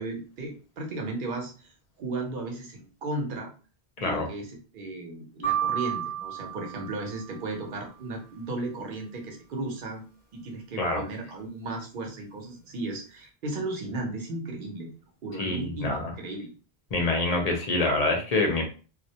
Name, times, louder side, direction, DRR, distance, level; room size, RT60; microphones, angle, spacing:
voice 1, 0.0-1.7 2.0-3.5 4.0-10.0 10.3-14.9 15.2-16.5, right 2 dB, 60° right, 2 dB, 0.8 m, -35 dB
sound 1, 5.4-7.6, right 10 dB, 75° left, 0.8 m, -31 dB
voice 2, 15.4-16.1 16.9-18.6, left 2 dB, 45° left, 2 dB, 0.6 m, -26 dB
2.2 x 2.0 x 2.7 m, 0.36 s
omnidirectional pair, 1.1 m